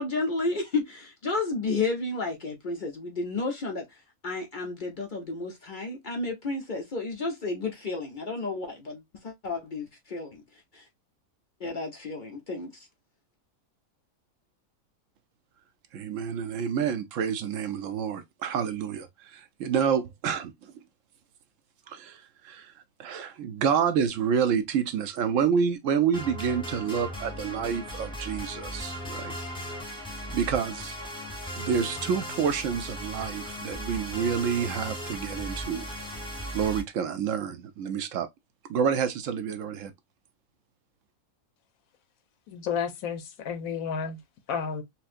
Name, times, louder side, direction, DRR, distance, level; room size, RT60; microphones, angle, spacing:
voice 1, 0.0-3.9 4.2-10.4 10.7-10.9 11.6-12.9, left 3 dB, 50° left, 0.6 m, -32 dB
voice 2, 15.9-20.7 21.9-22.7 23.0-29.3 30.3-31.0 31.6-35.8 36.5-38.3 38.7-39.9, right 7 dB, 70° right, 0.9 m, -28 dB
sound 1, 26.1-36.8, equal, 5° left, 0.7 m, -37 dB
voice 3, 42.5-44.2 44.5-44.8, left 6 dB, 80° left, 1.1 m, -31 dB
4.2 x 2.0 x 2.4 m
omnidirectional pair, 1.5 m